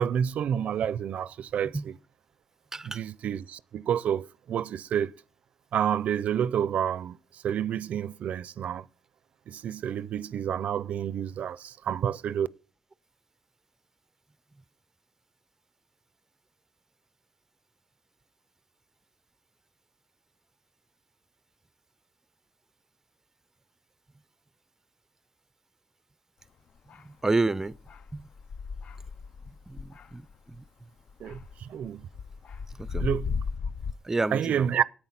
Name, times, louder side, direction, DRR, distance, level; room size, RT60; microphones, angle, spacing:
voice 1, 0.0-2.0 2.8-5.1 5.7-8.9 9.5-12.5 31.2-32.1 33.0-33.3 34.3-34.8, right 9 dB, 80° right, 0.4 m, -29 dB
sound 1, 26.9-27.0 27.7-30.7 31.1-33.9, left 5 dB, 65° left, 0.5 m, -35 dB
voice 2, 27.2-27.7 28.1-28.2 29.7-30.6 32.8-33.1 34.0-34.7, right 3 dB, 20° right, 0.4 m, -29 dB
9.7 x 8.8 x 5.8 m
cardioid pair, 100°, 2 cm